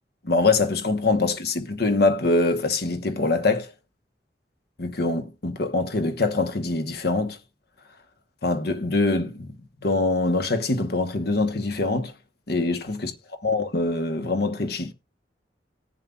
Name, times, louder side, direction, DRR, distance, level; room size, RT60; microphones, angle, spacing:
voice 1, 0.2-3.7 4.8-7.4 8.4-9.5 9.8-12.1 12.5-13.1 13.4-14.9, left 3 dB, 65° left, 1.1 m, -24 dB
19.5 x 7.3 x 2.4 m
head